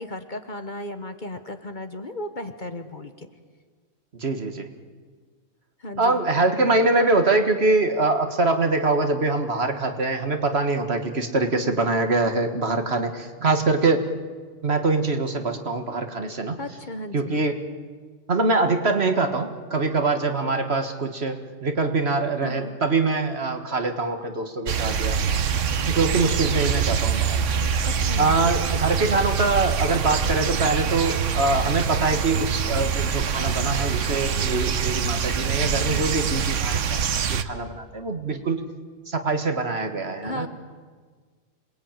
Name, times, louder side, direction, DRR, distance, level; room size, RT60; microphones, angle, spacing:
voice 1, 0.0-3.3 5.8-6.2 16.6-17.4 22.4-22.7 27.9-28.3 35.7-36.3 40.2-40.5, left 1 dB, 40° left, 8 dB, 1.4 m, -35 dB
voice 2, 4.1-4.7 6.0-14.1 14.6-16.6 17.1-17.6 18.3-25.2 25.9-27.4 28.2-37.0 37.3-38.6 39.1-40.5, right 3 dB, 50° right, 6 dB, 1.9 m, -24 dB
sound 1, 24.7-37.4, right 7 dB, 70° right, 1.3 m, -24 dB
27.0 x 20.5 x 9.0 m, 1.5 s
omnidirectional pair, 1.3 m